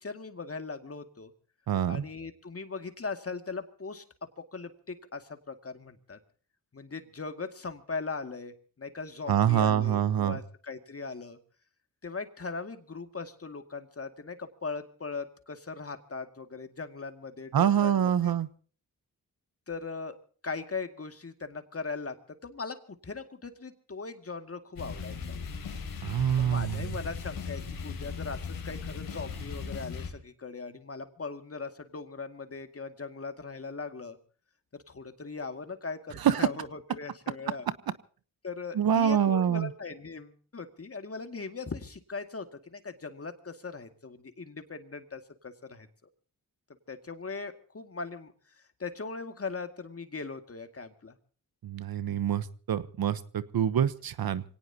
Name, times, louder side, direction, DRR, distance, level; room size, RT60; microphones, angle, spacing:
voice 1, 0.0-1.3 1.9-4.0 4.4-6.2 6.7-11.4 12.0-18.3 19.7-20.2 20.4-25.4 26.4-34.2 34.7-37.7 38.4-45.9 46.9-51.2, left 4 dB, 40° left, 7 dB, 2.3 m, -39 dB
voice 2, 1.7-2.0 9.3-10.4 17.5-18.5 26.0-26.8 36.2-36.5 38.7-39.7 51.6-54.4, right 9 dB, 75° right, 15 dB, 1.1 m, -26 dB
sound 1, 24.8-30.1, left 5 dB, 80° left, 3.7 m, -38 dB
25.5 x 18.0 x 2.9 m, 0.42 s
cardioid pair, 65°, 36 cm